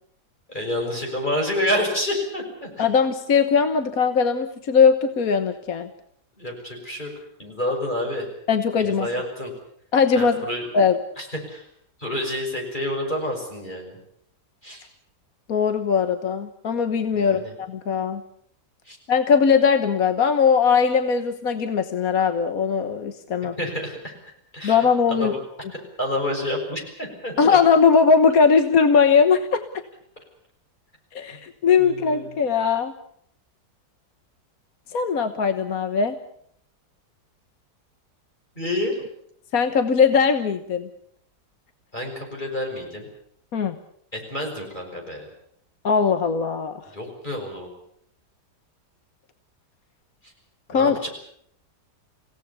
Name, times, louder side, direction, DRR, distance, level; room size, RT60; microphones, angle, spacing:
voice 1, 0.5-2.9 6.4-7.1 7.4-8.3 8.8-9.5 10.2-10.7 11.2-11.7 12.0-14.0 14.6-14.9 17.1-17.5 18.8-19.0 23.6-24.1 24.5-25.4 26.0-27.6 31.8-32.3 38.6-39.0 41.9-43.1 44.1-45.3 46.9-47.7 50.2-50.3 50.7-51.1, left 1 dB, 30° left, 1 dB, 6.2 m, -29 dB
voice 2, 2.8-5.9 8.5-9.1 9.9-10.4 10.7-11.0 15.5-18.2 19.1-23.5 24.6-25.3 27.4-29.6 31.1-32.9 34.9-36.2 39.5-40.9 43.5-43.8 45.8-46.8 50.7-51.0, left 6 dB, 60° left, 9 dB, 1.6 m, -20 dB
29.5 x 18.0 x 7.0 m, 0.69 s
omnidirectional pair, 1.8 m